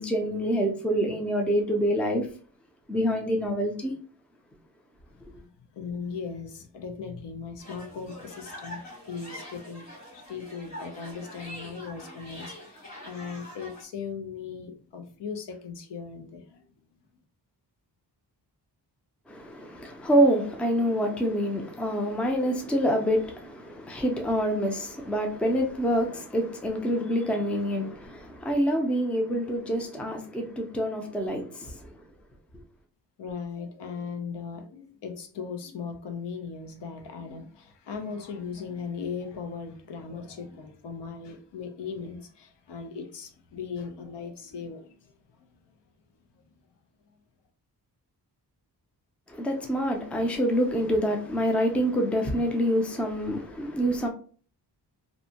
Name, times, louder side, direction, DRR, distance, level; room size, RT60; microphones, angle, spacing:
voice 1, 0.0-2.3 2.9-3.9 19.3-31.9 32.5-32.6 49.3-54.1, equal, 5° left, 0.3 m, -26 dB
voice 2, 5.3-8.8 9.1-9.9 10.1-16.7 33.2-45.1 46.4-46.5, left 5 dB, 85° left, 0.6 m, -38 dB
sound 1, 7.6-13.8, left 1 dB, 40° left, 1.3 m, -44 dB
2.6 x 2.1 x 2.8 m
wide cardioid pair, 140°, 41 cm